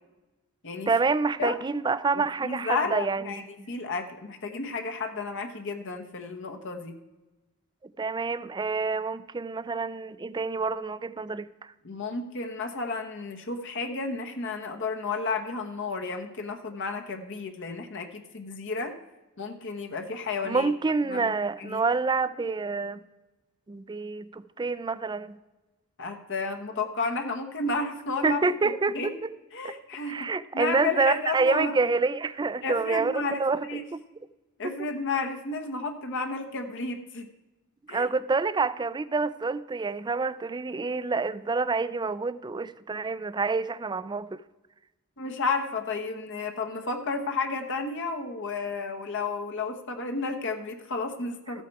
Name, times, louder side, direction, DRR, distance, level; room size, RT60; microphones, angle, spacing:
voice 1, 0.9-3.5 8.0-11.7 20.4-23.0 23.7-25.4 28.2-29.3 29.6-29.7 30.1-34.0 34.6-34.7 37.9-44.4, right 4 dB, 20° right, 15 dB, 0.4 m, -27 dB
voice 2, 2.1-7.0 11.8-18.9 19.4-20.7 21.1-21.3 21.6-21.8 26.0-29.1 29.5-31.7 32.6-33.4 33.7-33.8 34.6-37.3 37.9-38.1 45.2-51.6, left 3 dB, 60° left, 4 dB, 1.1 m, -32 dB
14.0 x 8.2 x 4.6 m, 1.1 s
head